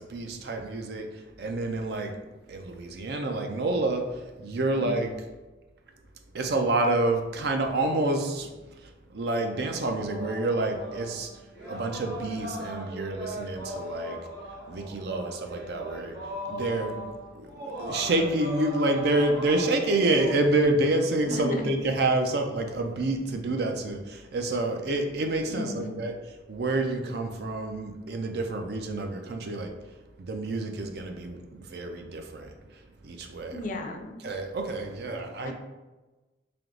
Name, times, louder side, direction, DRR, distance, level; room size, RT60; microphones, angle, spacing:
voice 1, 0.0-2.2 2.5-5.1 6.3-11.4 11.7-14.2 14.7-16.2 16.5-17.0 17.3-26.2 26.5-29.8 30.2-33.6 34.2-35.5, right 2 dB, 60° right, 4 dB, 0.5 m, -28 dB
voice 2, 4.7-5.2 21.3-21.7 25.5-26.0 33.5-34.2 35.4-35.5, left 1 dB, 45° left, 4 dB, 0.4 m, -35 dB
sound 1, 9.9-20.6, equal, 80° right, 1.5 m, -38 dB
3.5 x 2.9 x 3.7 m, 1.2 s
head